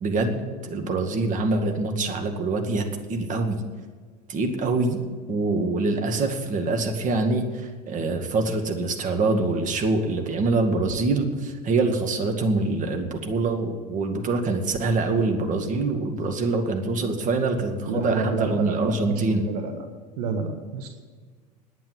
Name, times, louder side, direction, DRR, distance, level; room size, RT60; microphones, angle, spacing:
voice 1, 0.0-3.5 4.3-5.0 5.3-19.5, right 3 dB, 40° right, 5 dB, 2.1 m, -25 dB
voice 2, 17.8-19.9 20.2-20.9, right 4 dB, 70° right, 6 dB, 1.5 m, -29 dB
10.0 x 9.2 x 9.9 m, 1.5 s
hypercardioid pair, 90°, 20 cm